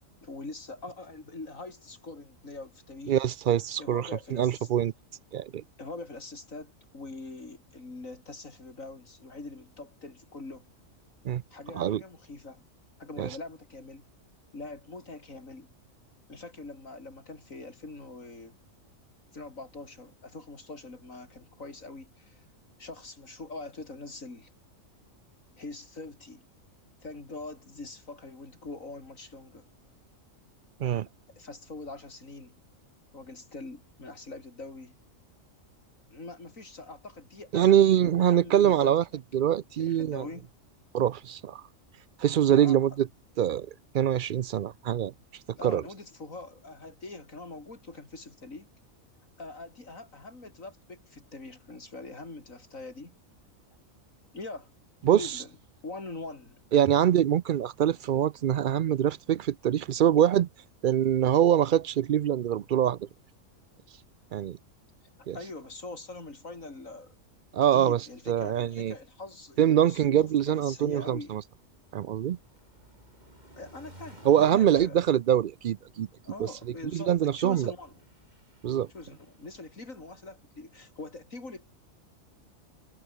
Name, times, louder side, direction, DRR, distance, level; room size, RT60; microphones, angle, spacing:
voice 1, 0.2-3.2 3.8-4.7 5.8-10.7 11.5-12.6 13.0-14.1 14.5-15.7 16.3-18.5 19.3-22.4 22.8-24.5 25.6-26.4 27.0-29.7 31.4-32.5 33.1-35.0 36.1-38.9 39.8-40.5 42.5-42.8 45.6-48.7 49.4-53.2 54.3-54.7 55.1-55.5 55.8-56.6 65.3-67.1 67.7-71.4 73.6-75.0 76.2-77.9 78.9-81.6, left 3 dB, 80° left, 4.7 m, -43 dB
voice 2, 3.1-4.9 5.3-5.6 11.2-11.4 11.7-12.0 13.2-13.3 30.8-31.1 37.5-39.0 39.3-40.3 40.9-41.6 42.2-43.1 43.4-43.7 43.9-45.1 45.6-45.8 55.0-55.3 56.7-60.5 60.8-63.1 64.3-64.6 65.3-65.4 67.5-68.0 68.3-68.9 69.6-71.4 71.9-72.4 74.2-76.1 76.4-76.5 76.9-77.7 78.6-78.9, right 10 dB, 65° right, 0.5 m, -24 dB
sound 1, 70.8-79.8, right 1 dB, 35° right, 5.5 m, -53 dB
omnidirectional pair, 1.4 m